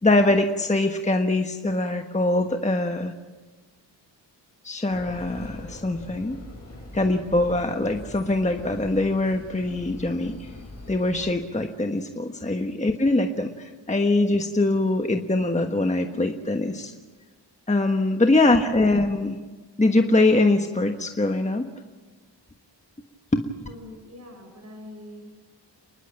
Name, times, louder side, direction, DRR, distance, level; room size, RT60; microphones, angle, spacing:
voice 1, 0.0-3.1 4.6-6.4 6.9-10.5 10.9-16.9 17.7-19.4 19.8-21.7 23.3-23.4, left 2 dB, 15° left, 5 dB, 1.3 m, -23 dB
sound 1, 4.9-11.3, left 1 dB, 35° left, 7.9 m, -42 dB
voice 2, 23.7-25.4, left 1 dB, 35° right, 3 dB, 6.5 m, -44 dB
29.0 x 11.5 x 8.9 m, 1.3 s
cardioid pair, 80°, 43 cm